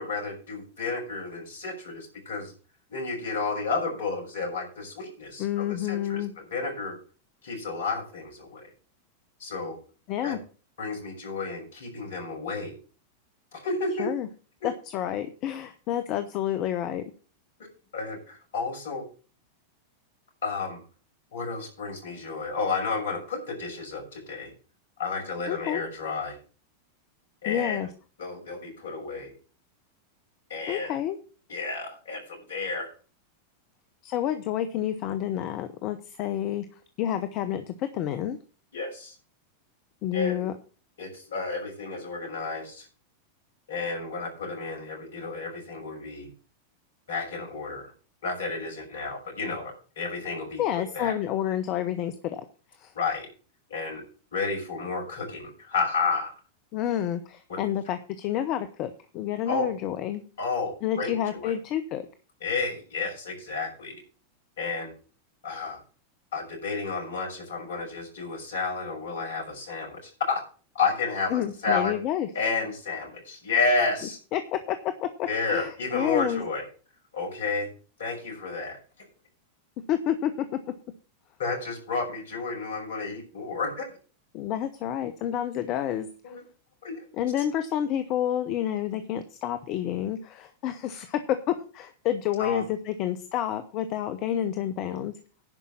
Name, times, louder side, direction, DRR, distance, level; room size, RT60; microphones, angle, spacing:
voice 1, 0.0-2.5 2.9-6.2 6.5-7.0 7.4-8.7 9.4-9.8 10.2-10.4 10.8-12.7 13.5-14.1 17.6-17.7 17.9-19.0 20.4-20.8 21.3-24.5 25.0-26.4 27.4-27.9 28.2-29.3 30.5-30.9 31.5-32.9 38.7-39.1 40.1-40.5 41.0-42.9 43.7-46.3 47.1-47.9 48.2-51.1 52.9-53.3 53.7-54.0 54.3-56.3 57.5-57.6 59.5-59.7 60.4-61.5 62.4-64.0 64.6-64.9 65.4-65.8 66.3-70.4 70.7-71.9 72.3-74.2 75.3-76.7 77.1-77.7 78.0-78.8 81.4-84.0 86.2-86.4 86.8-87.0 92.4-92.6, left 4 dB, 60° left, 1 dB, 6.4 m, -31 dB
voice 2, 5.4-6.3 10.1-10.4 14.0-14.3 14.6-17.0 25.5-25.8 27.5-27.9 30.7-31.2 34.0-36.7 37.0-38.4 40.0-40.5 50.6-52.4 52.8-52.9 56.7-60.2 60.8-62.0 71.3-72.3 74.3-76.4 79.9-80.6 84.3-86.3 87.1-95.1, left 11 dB, 40° left, 10 dB, 0.9 m, -29 dB
11.0 x 5.5 x 8.7 m, 0.39 s
figure-of-eight pair, 90°, 0 cm